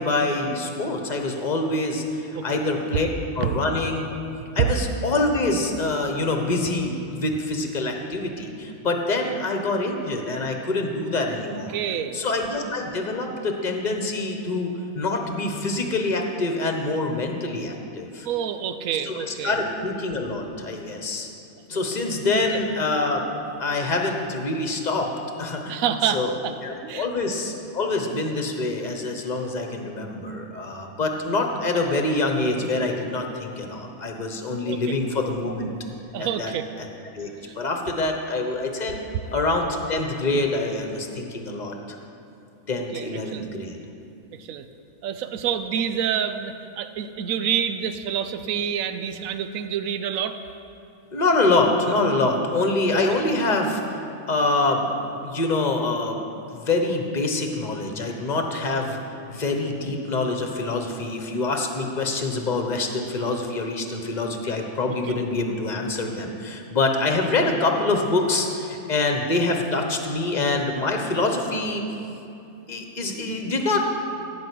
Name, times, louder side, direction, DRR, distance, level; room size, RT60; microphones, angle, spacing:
voice 1, 0.0-3.1 3.3-4.1 4.5-11.7 12.1-18.3 19.1-21.3 21.7-23.2 23.6-25.8 26.1-26.3 26.6-35.7 36.2-36.5 36.8-36.9 37.1-37.3 37.6-39.0 39.3-42.0 42.7-43.8 51.1-54.0 54.3-54.9 55.2-56.2 56.5-59.0 59.3-71.8 72.7-73.9, left 2 dB, 35° left, 3 dB, 1.2 m, -25 dB
voice 2, 11.7-12.3 18.2-19.6 21.7-22.0 25.7-26.5 26.8-27.1 34.6-35.0 36.1-36.7 37.4-37.5 42.7-43.5 44.4-44.7 45.0-50.4 65.1-65.2, right 8 dB, 80° right, 10 dB, 1.1 m, -28 dB
15.5 x 5.4 x 8.4 m, 2.8 s
omnidirectional pair, 1.4 m